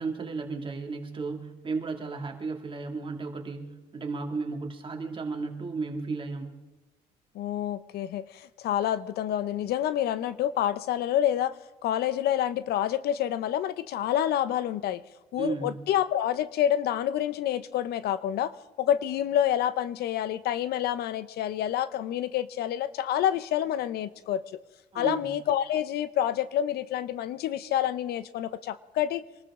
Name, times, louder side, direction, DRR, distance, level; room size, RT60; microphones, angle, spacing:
voice 1, 0.0-6.6 15.3-15.8 24.9-25.3, right 4 dB, 30° right, 3 dB, 2.4 m, -34 dB
voice 2, 7.3-11.6 11.8-15.0 15.3-18.5 18.8-24.4 24.9-29.3, left 11 dB, 70° left, 15 dB, 0.7 m, -28 dB
25.0 x 13.5 x 3.7 m, 1.2 s
cardioid pair, 110°, 17 cm